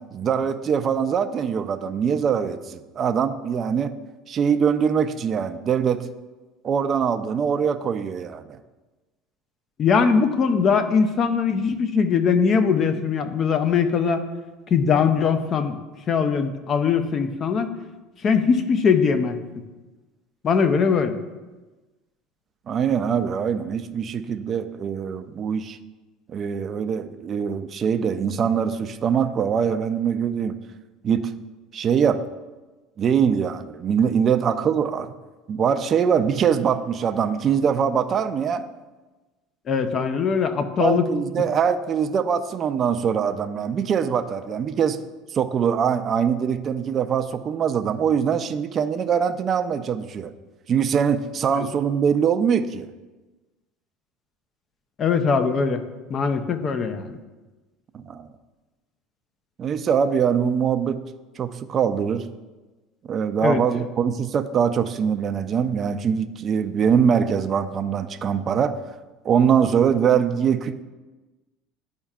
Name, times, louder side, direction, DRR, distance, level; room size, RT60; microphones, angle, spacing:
voice 1, 0.1-3.9 4.3-6.1 6.6-8.4 22.7-25.8 26.3-30.6 31.0-31.3 31.7-32.2 33.0-35.1 35.5-38.6 40.8-45.0 45.3-50.3 50.7-52.9 57.9-58.3 59.6-61.0 61.4-62.3 63.1-68.8 69.2-70.8, right 7 dB, 40° right, 10 dB, 0.4 m, -23 dB
voice 2, 9.8-14.2 14.7-15.8 16.1-17.7 18.2-19.4 20.4-21.2 39.7-41.1 55.0-55.8 56.1-57.2 63.4-63.6, left 6 dB, 40° left, 9 dB, 0.6 m, -21 dB
11.5 x 4.4 x 2.4 m, 1.2 s
supercardioid pair, 105°, 0 cm